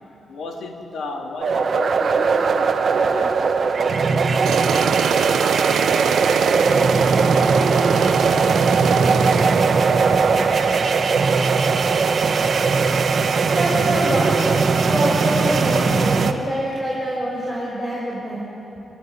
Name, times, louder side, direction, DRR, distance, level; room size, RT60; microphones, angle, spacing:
voice 1, 0.3-3.5, left 3 dB, 75° left, 1 dB, 3.1 m, -33 dB
sound 1, 1.4-16.3, right 4 dB, 55° right, 1.3 m, -19 dB
Tools, 4.4-9.8, right 9 dB, 90° right, 0.7 m, -25 dB
voice 2, 10.1-10.8 13.2-14.4 14.7-18.5, equal, 15° left, -6 dB, 6.0 m, -26 dB
28.5 x 13.0 x 9.5 m, 2.9 s
cardioid pair, 80°, 0 cm